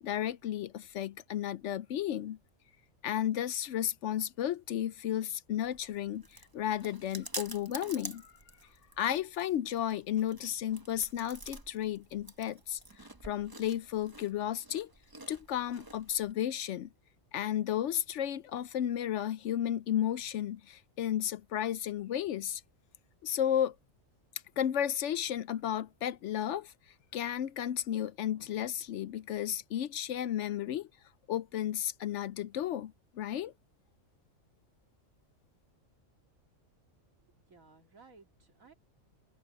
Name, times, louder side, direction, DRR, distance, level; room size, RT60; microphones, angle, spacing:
voice 1, 0.0-2.4 3.0-8.3 9.0-14.9 15.3-16.9 17.3-22.6 23.2-23.7 24.6-26.7 27.1-30.9 31.3-33.5, left 10 dB, 70° left, 0.8 m, -33 dB
Chewing mastication, 5.6-16.3, right 2 dB, 15° right, 1.1 m, -48 dB
voice 2, 37.1-38.7, right 4 dB, 80° right, 3.0 m, -59 dB
open air
omnidirectional pair, 1.4 m